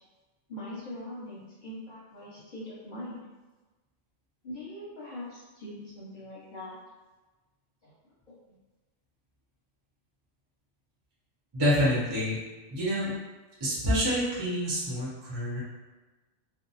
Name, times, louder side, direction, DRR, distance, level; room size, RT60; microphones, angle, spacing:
voice 1, 0.5-3.2 4.4-6.8 7.8-7.9 8.3-8.6, left 1 dB, 45° left, -9 dB, 0.9 m, -42 dB
voice 2, 11.5-12.4 12.7-13.1 13.6-15.6, equal, 25° right, -8 dB, 0.6 m, -27 dB
2.4 x 2.0 x 2.6 m, 1.2 s
omnidirectional pair, 1.3 m